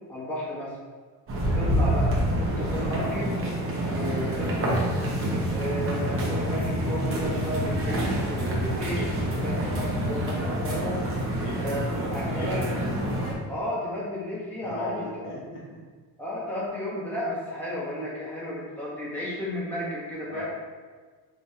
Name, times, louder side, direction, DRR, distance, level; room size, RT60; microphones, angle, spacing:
voice 1, 0.1-0.8 1.5-2.1 2.4-3.4 3.8-5.0 5.5-11.0 11.6-12.7 13.5-15.3 16.2-20.4, left 1 dB, 5° left, -8 dB, 1.2 m, -33 dB
sound 1, 1.3-13.3, right 1 dB, 30° right, 0.9 m, -27 dB
voice 2, 1.4-1.7 11.1-12.6 14.6-15.8 20.3-20.4, left 2 dB, 45° left, -5 dB, 0.7 m, -39 dB
5.3 x 2.5 x 2.8 m, 1.5 s
cardioid pair, 135°, 45 cm